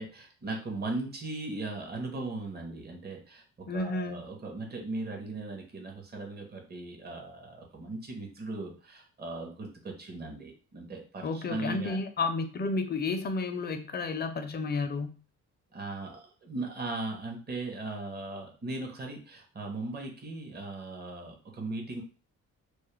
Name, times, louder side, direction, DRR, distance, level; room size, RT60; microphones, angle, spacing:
voice 1, 0.0-3.4 3.7-12.0 15.7-22.0, right 2 dB, 30° right, 1 dB, 0.8 m, -38 dB
voice 2, 3.7-4.2 11.2-15.2, left 3 dB, 35° left, 8 dB, 0.4 m, -31 dB
2.3 x 2.0 x 3.1 m, 0.37 s
cardioid pair, 90°, 30 cm